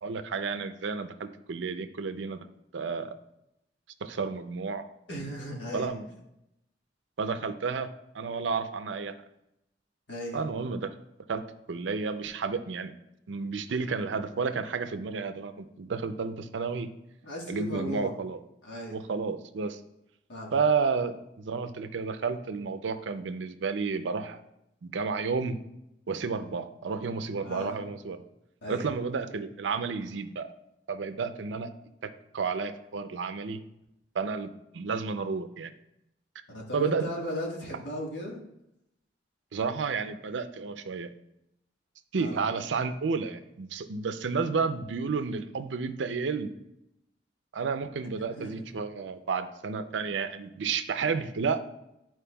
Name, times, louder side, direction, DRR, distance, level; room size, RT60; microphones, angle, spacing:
voice 1, 0.0-2.5 2.7-3.1 4.0-4.8 5.7-6.0 7.2-7.9 8.1-9.1 10.3-10.9 11.3-11.4 11.7-12.9 13.3-16.9 17.5-18.4 18.9-19.8 20.5-24.4 24.8-25.6 26.1-28.2 28.7-30.5 30.9-31.7 32.0-33.6 34.1-35.7 36.7-37.1 39.5-41.1 42.1-46.5 47.5-51.7, right 5 dB, 85° right, 9 dB, 0.5 m, -31 dB
voice 2, 5.1-5.9 10.1-10.4 17.2-18.1 18.6-19.0 20.3-20.6 27.4-27.8 28.6-28.9 36.5-38.4 42.2-42.4 48.2-48.5, equal, 75° left, -1 dB, 1.5 m, -36 dB
10.0 x 4.5 x 2.3 m, 0.84 s
head